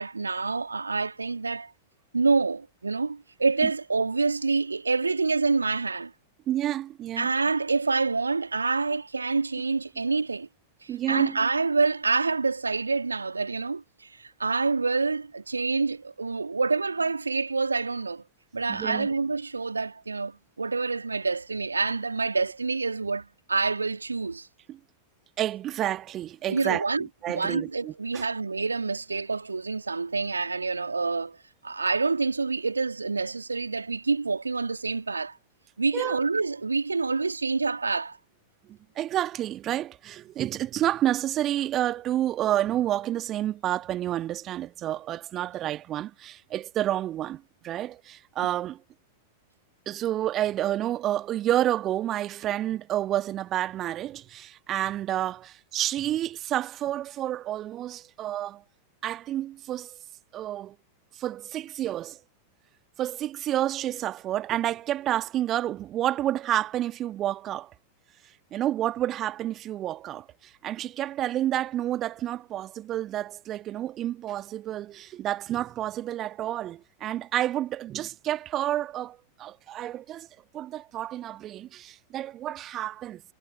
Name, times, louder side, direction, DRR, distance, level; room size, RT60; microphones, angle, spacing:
voice 1, 0.0-1.7 2.1-6.1 7.2-10.5 10.8-18.2 18.5-24.5 26.5-31.4 31.6-35.4 35.8-38.2, right 4 dB, 80° right, 2.1 m, -27 dB
voice 2, 6.5-7.3 10.9-11.4 18.7-19.1 24.7-24.8 25.4-26.9 27.2-28.2 35.9-36.2 38.7-48.8 49.8-58.6 59.0-60.0 60.3-60.7 61.1-62.2 63.0-67.7 68.5-80.3 80.5-83.2, right 12 dB, 30° right, 1.6 m, -29 dB
figure-of-eight pair, 90°, 0 cm